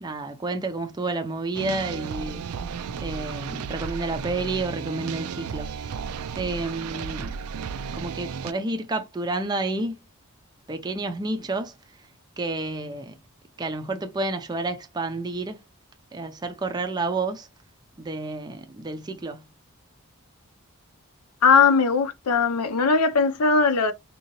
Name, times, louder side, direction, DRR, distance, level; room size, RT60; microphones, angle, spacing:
voice 1, 0.0-2.5 3.0-6.0 6.4-7.4 7.9-10.0 10.7-11.7 12.4-13.2 13.6-15.6 16.1-17.5 18.0-19.4, right 2 dB, 20° right, 0.4 m, -30 dB
sound 1, 1.5-8.5, right 6 dB, 90° right, 0.4 m, -34 dB
voice 2, 21.4-23.9, left 5 dB, 85° left, 0.6 m, -19 dB
3.7 x 2.8 x 2.9 m
head